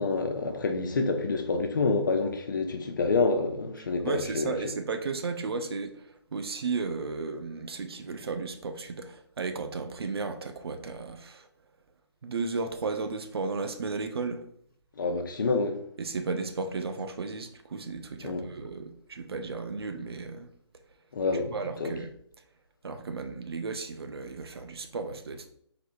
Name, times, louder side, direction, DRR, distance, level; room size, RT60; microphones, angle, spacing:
voice 1, 0.0-4.6 15.0-15.8 18.2-18.4 21.1-21.5 21.8-21.9, left 3 dB, 45° left, 0.6 m, -27 dB
voice 2, 3.8-11.5 12.2-14.4 16.0-20.5 21.5-22.1 22.8-25.5, right 4 dB, 60° right, 0.6 m, -34 dB
4.0 x 3.1 x 3.0 m
hypercardioid pair, 165°, 14 cm